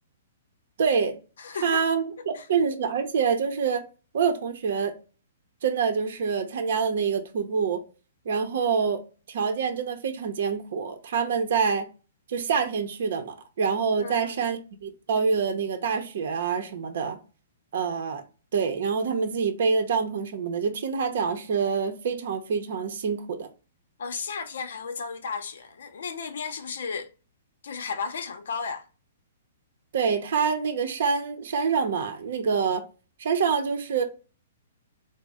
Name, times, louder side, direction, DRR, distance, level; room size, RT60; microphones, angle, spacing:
voice 1, 0.8-1.1 1.6-3.8 4.1-4.9 5.6-7.8 8.3-9.0 9.3-11.9 12.3-17.2 17.7-18.2 18.5-23.5 29.9-32.8 33.2-34.0, right 6 dB, 60° right, 0.7 m, -26 dB
voice 2, 1.4-1.8 2.3-2.4 14.0-14.5 24.0-27.1 27.6-28.8, left 5 dB, 75° left, 0.6 m, -34 dB
4.0 x 2.0 x 3.5 m
hypercardioid pair, 160°, 0 cm